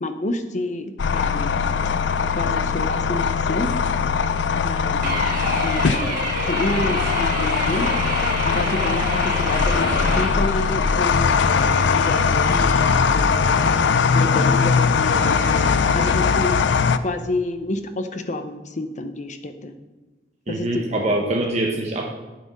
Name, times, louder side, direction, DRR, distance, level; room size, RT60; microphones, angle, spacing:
voice 1, 0.0-1.6 2.3-3.7 4.6-7.9 8.4-13.7 14.1-16.6 17.0-19.7 20.5-21.3, left 1 dB, 45° left, 8 dB, 0.8 m, -29 dB
sound 1, 1.0-17.0, left 5 dB, 85° left, 0.5 m, -20 dB
sound 2, 5.0-10.3, right 2 dB, 55° right, 2.4 m, -28 dB
sound 3, 6.6-16.1, left 1 dB, 65° left, 2.6 m, -36 dB
voice 2, 20.5-22.1, right 1 dB, 40° right, 0 dB, 0.9 m, -24 dB
7.8 x 7.7 x 5.3 m, 1.2 s
head